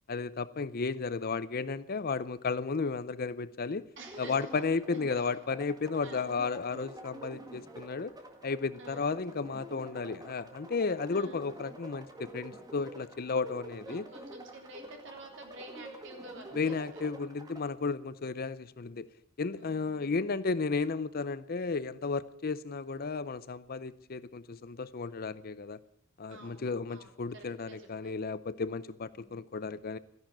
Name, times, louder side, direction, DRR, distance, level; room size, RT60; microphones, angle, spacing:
voice 1, 0.1-3.9 4.2-8.1 8.4-14.1 16.5-19.1 19.4-25.8 26.2-30.0, left 4 dB, 45° left, 16 dB, 0.6 m, -33 dB
sound 1, 4.0-17.6, right 1 dB, 20° right, 1.9 m, -48 dB
voice 2, 4.0-4.6 5.1-5.3 6.0-6.4 8.8-9.2 10.0-10.1 11.1-11.6 13.9-17.1 19.6-20.1 26.3-28.2 29.1-29.4, right 2 dB, 65° right, 2 dB, 3.7 m, -50 dB
14.0 x 11.0 x 8.8 m, 0.66 s
head